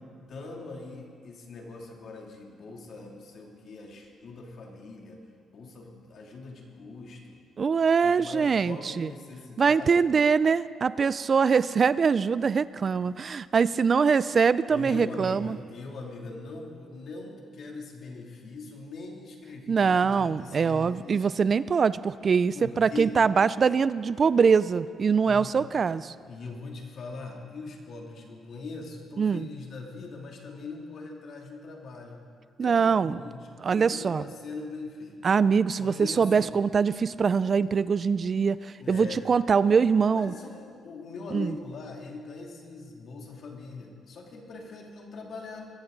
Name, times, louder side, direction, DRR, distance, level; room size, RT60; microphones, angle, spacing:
voice 1, 0.2-5.2 5.5-7.4 8.0-10.1 14.7-21.4 22.5-23.2 25.2-25.8 26.2-32.2 32.6-35.2 35.8-36.5 38.8-39.2 40.1-45.7, left 3 dB, 60° left, 0 dB, 2.9 m, -41 dB
voice 2, 7.6-9.1 9.6-15.6 19.7-26.1 29.2-29.5 32.6-33.2 33.6-34.2 35.2-40.3 41.3-41.5, right 5 dB, 45° right, 17 dB, 0.4 m, -23 dB
21.5 x 15.0 x 4.0 m, 2.2 s
cardioid pair, 90°, 0 cm